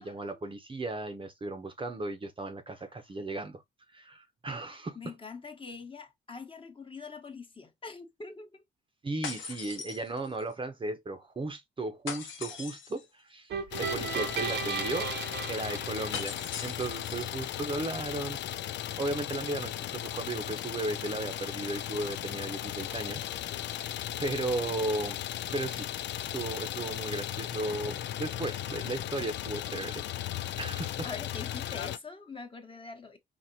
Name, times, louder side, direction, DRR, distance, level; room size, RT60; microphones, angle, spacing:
voice 1, 0.0-3.6 3.9-5.1 9.0-15.1 15.5-23.3 24.2-25.2 25.5-25.9 26.2-31.1, right 2 dB, 25° right, 0.8 m, -36 dB
voice 2, 4.9-8.6 17.4-17.7 28.7-28.8 31.0-33.2, left 4 dB, 25° left, 1.1 m, -44 dB
sound 1, 9.2-10.5 12.1-13.1 16.1-17.3, left 6 dB, 80° left, 1.1 m, -40 dB
sound 2, 13.5-16.7, right 6 dB, 60° right, 0.9 m, -35 dB
Idling, 13.7-32.0, left 12 dB, 65° left, 0.4 m, -36 dB
4.3 x 2.9 x 2.7 m
cardioid pair, 90°, 20 cm